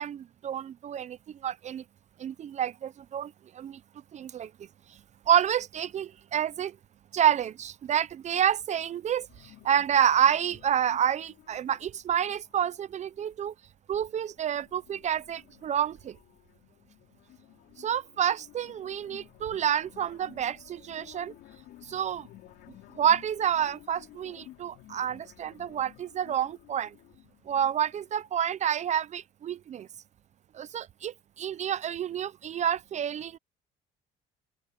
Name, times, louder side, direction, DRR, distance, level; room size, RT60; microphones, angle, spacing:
voice 1, 0.0-1.8 2.2-3.8 4.1-4.5 5.3-6.8 7.1-13.5 13.9-16.2 17.8-21.3 21.8-22.3 23.0-26.9 27.5-29.9 30.5-33.4, right 9 dB, 45° right, 0.5 m, -29 dB
sound 1, 9.3-13.5 13.9-28.3, left 16 dB, 85° left, 4.9 m, -54 dB
open air
cardioid pair, 110°, 17 cm